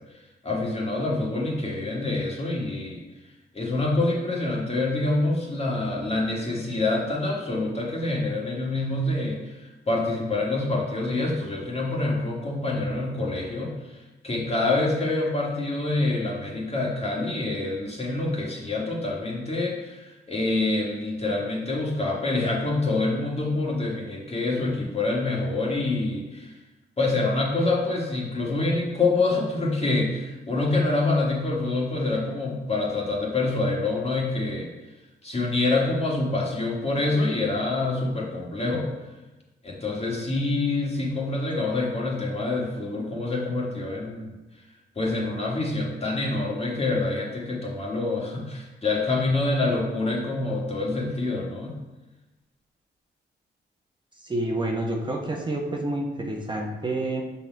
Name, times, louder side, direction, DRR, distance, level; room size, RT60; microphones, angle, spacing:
voice 1, 0.4-3.0 3.5-26.5 27.0-34.7 35.2-38.9 39.6-44.3 45.0-51.7, left 2 dB, 35° left, -3 dB, 2.0 m, -26 dB
voice 2, 54.2-57.2, right 1 dB, 25° right, 0 dB, 1.1 m, -28 dB
6.0 x 4.1 x 4.6 m, 1.1 s
supercardioid pair, 55°, 19 cm